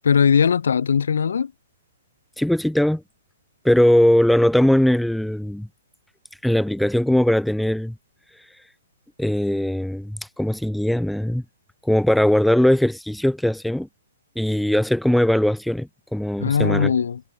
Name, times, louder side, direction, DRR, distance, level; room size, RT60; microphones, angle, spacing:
voice 1, 0.0-1.5 16.4-17.2, left 7 dB, 65° left, 3.3 m, -19 dB
voice 2, 2.4-3.0 3.6-5.7 6.4-7.9 9.2-11.4 11.8-13.9 14.3-16.9, left 1 dB, ahead, 1.5 m, -20 dB
figure-of-eight pair, 120°, 0 cm